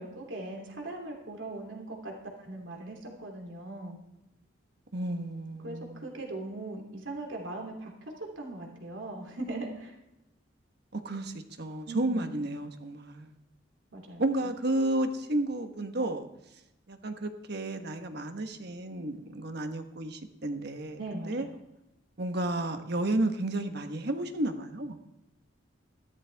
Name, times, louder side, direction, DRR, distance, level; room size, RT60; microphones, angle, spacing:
voice 1, 0.0-4.0 5.6-9.9 11.8-12.3 13.9-14.2 21.0-21.5, right 2 dB, 80° right, 1 dB, 3.0 m, -40 dB
voice 2, 4.9-6.1 10.9-13.3 14.2-16.3 16.9-21.5 22.2-25.0, right 1 dB, 60° right, 7 dB, 1.2 m, -32 dB
15.0 x 12.5 x 3.5 m, 0.91 s
head